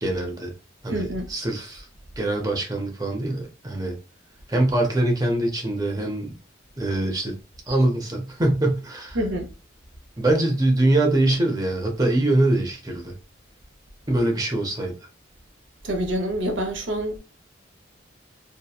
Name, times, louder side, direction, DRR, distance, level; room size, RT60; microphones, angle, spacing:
voice 1, 0.0-0.5 0.8-1.9 2.2-4.0 4.5-6.3 6.8-7.3 7.7-9.2 10.2-13.1 14.1-14.9, right 1 dB, 20° right, 0.5 m, -23 dB
voice 2, 0.9-1.3 9.1-9.5 15.8-17.2, equal, 80° right, 0.7 m, -26 dB
2.8 x 2.1 x 2.3 m
head